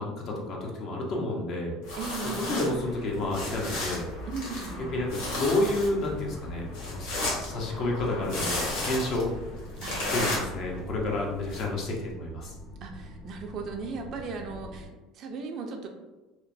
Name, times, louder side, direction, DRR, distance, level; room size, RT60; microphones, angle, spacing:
voice 1, 0.0-1.8 2.2-4.0 4.9-9.3 10.1-12.5, left 2 dB, 55° left, -1 dB, 0.7 m, -30 dB
sound 1, 1.8-11.6, left 1 dB, 80° left, 0.9 m, -34 dB
voice 2, 2.0-2.5 4.3-5.0 9.8-10.5 12.8-15.9, right 4 dB, 55° right, 4 dB, 0.4 m, -37 dB
sound 2, 4.8-14.9, left 2 dB, 35° left, 1.2 m, -44 dB
2.9 x 2.0 x 2.5 m, 1.1 s
supercardioid pair, 95°, 0 cm